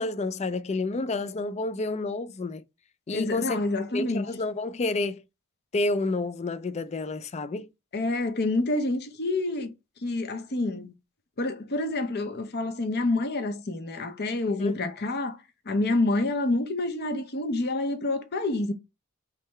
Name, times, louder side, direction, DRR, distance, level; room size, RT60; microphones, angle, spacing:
voice 1, 0.0-2.6 3.1-3.6 3.9-5.2 5.7-7.7 14.6-14.9, left 2 dB, 30° left, 0.4 m, -29 dB
voice 2, 3.1-4.3 7.9-9.7 10.0-10.9 11.4-15.4 15.7-18.7, left 2 dB, 45° left, 0.8 m, -28 dB
3.7 x 3.2 x 4.4 m
head